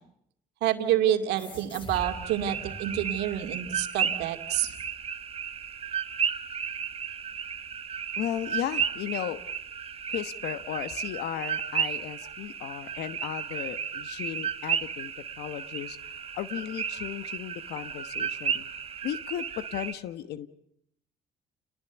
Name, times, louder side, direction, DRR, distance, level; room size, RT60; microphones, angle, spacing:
voice 1, 0.6-4.7, right 11 dB, 85° right, 6 dB, 2.4 m, -28 dB
sound 1, 1.4-4.4, left 2 dB, 30° left, 3.1 m, -44 dB
sound 2, 1.9-19.9, right 7 dB, 35° right, 1.1 m, -34 dB
voice 2, 8.2-9.4 10.1-15.1 15.4-16.0 16.3-18.7 19.0-20.5, left 11 dB, 75° left, 13 dB, 1.2 m, -35 dB
29.5 x 19.5 x 8.1 m, 0.75 s
cardioid pair, 110°, 17 cm